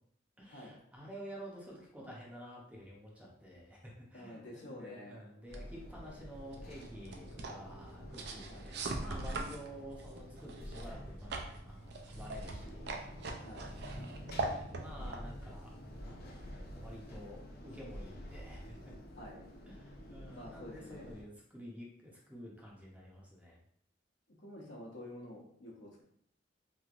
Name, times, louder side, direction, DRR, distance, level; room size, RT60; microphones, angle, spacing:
voice 1, 0.4-12.9 13.9-14.3 14.7-15.7 16.1-18.8 19.7-23.6, equal, 10° right, -3 dB, 0.6 m, -50 dB
voice 2, 4.1-5.2 8.5-8.7 13.4-14.1 19.2-19.5 20.3-21.1 24.4-26.0, left 1 dB, 80° left, -3 dB, 0.9 m, -49 dB
sound 1, 5.5-21.2, equal, 55° left, 0.5 m, -49 dB
sound 2, 5.5-16.6, right 2 dB, 60° right, 0.4 m, -43 dB
3.1 x 2.7 x 2.4 m, 0.66 s
head